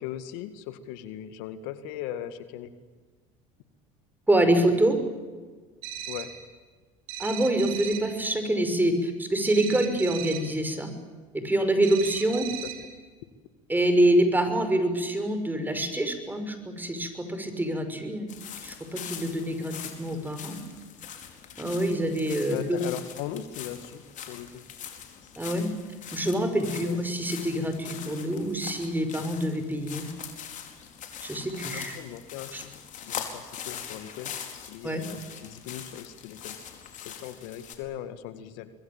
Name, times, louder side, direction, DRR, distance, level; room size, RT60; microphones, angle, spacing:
voice 1, 0.0-2.7 6.1-6.3 12.3-12.5 22.5-24.6 26.8-27.0 31.7-32.8 33.0-34.4 34.7-36.6 37.0-38.7, left 11 dB, 70° left, 11 dB, 2.0 m, -38 dB
voice 2, 4.3-5.0 7.2-10.9 11.3-12.5 13.7-18.3 18.6-20.6 21.6-22.8 25.4-25.7 26.1-30.0 31.2-32.0 32.5-32.6 34.8-35.0, right 1 dB, 10° right, 8 dB, 6.0 m, -26 dB
sound 1, 5.8-6.5 7.1-8.2 9.5-10.6 11.8-13.0, right 9 dB, 75° right, 3.7 m, -38 dB
sound 2, 18.3-37.7, left 8 dB, 50° left, 4.7 m, -42 dB
25.5 x 21.5 x 9.0 m, 1.4 s
hypercardioid pair, 85°, 17 cm